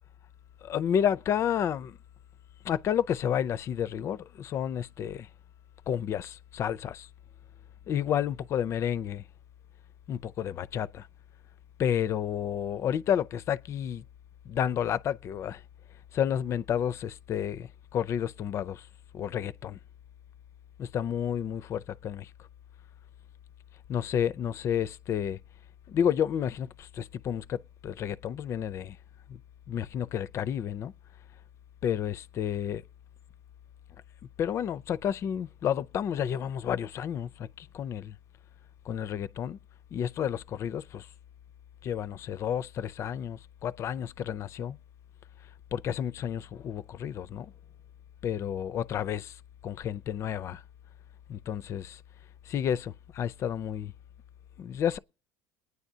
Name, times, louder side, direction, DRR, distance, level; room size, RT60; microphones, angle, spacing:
voice 1, 0.6-2.0 2.6-5.3 5.9-7.1 7.9-9.2 10.1-11.1 11.8-14.0 14.5-15.6 16.1-18.8 19.1-19.8 20.8-22.3 23.9-25.4 25.9-29.0 29.7-30.9 31.8-32.8 34.4-38.1 38.9-39.6 39.9-41.1 41.8-44.8 45.7-47.5 48.2-49.3 49.6-50.6 51.3-52.0 52.5-53.9 54.6-55.0, left 9 dB, 45° left, 0.5 m, -31 dB
22.0 x 9.5 x 2.8 m
supercardioid pair, 110°, 7 cm